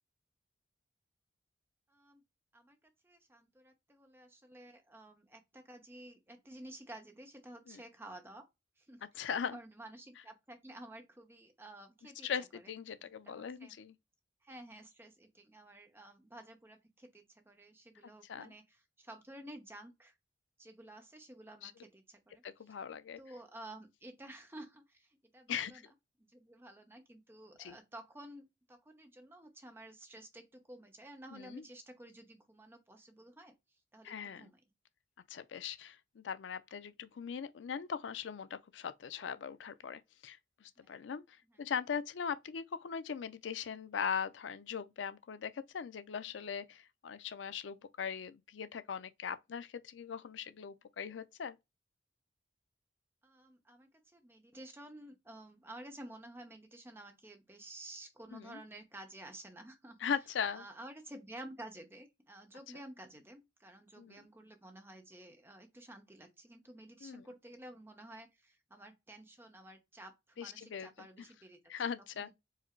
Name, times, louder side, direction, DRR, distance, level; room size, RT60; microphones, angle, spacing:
voice 1, 1.9-2.2 2.5-2.8 3.0-8.5 8.8-12.3 12.5-12.7 13.0-13.8 14.4-20.1 20.6-22.4 23.2-25.8 26.2-33.5 33.9-34.6 40.8-41.0 41.5-41.6 53.2-60.0 60.5-71.6 72.2-72.3, right 1 dB, 15° right, 0.8 m, -52 dB
voice 2, 9.1-9.6 12.2-13.9 18.3-18.5 21.6-21.7 22.4-23.2 25.5-25.8 27.6-27.8 31.3-31.6 34.0-34.5 35.3-41.2 41.6-51.6 58.3-58.6 60.0-60.6 64.0-64.2 67.0-67.2 70.4-71.1 71.7-72.3, left 7 dB, 85° left, 0.4 m, -40 dB
4.8 x 2.0 x 4.4 m
head